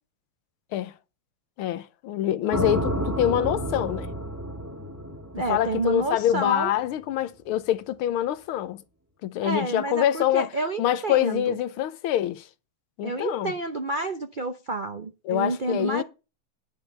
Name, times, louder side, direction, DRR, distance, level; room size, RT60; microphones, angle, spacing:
voice 1, 1.6-4.1 5.5-8.8 9.2-10.5 10.8-12.5 13.0-13.5 15.3-16.0, left 12 dB, 85° left, 1.7 m, -25 dB
sound 1, 2.5-6.6, right 1 dB, 10° right, 1.7 m, -31 dB
voice 2, 5.3-6.7 9.4-11.5 13.0-16.0, right 3 dB, 75° right, 0.4 m, -29 dB
10.0 x 5.4 x 7.0 m
omnidirectional pair, 2.3 m